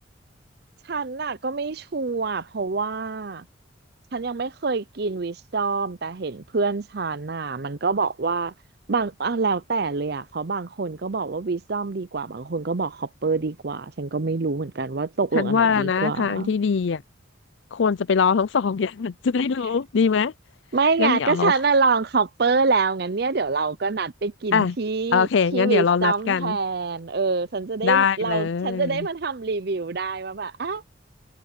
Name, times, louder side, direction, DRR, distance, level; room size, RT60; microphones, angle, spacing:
voice 1, 0.9-3.4 4.1-8.5 8.9-16.5 20.7-30.8, right 4 dB, 55° right, 0.6 m, -26 dB
voice 2, 15.3-17.0 17.7-20.3 21.0-21.5 24.5-24.8 25.1-26.6 27.8-29.1, left 6 dB, 70° left, 0.5 m, -22 dB
head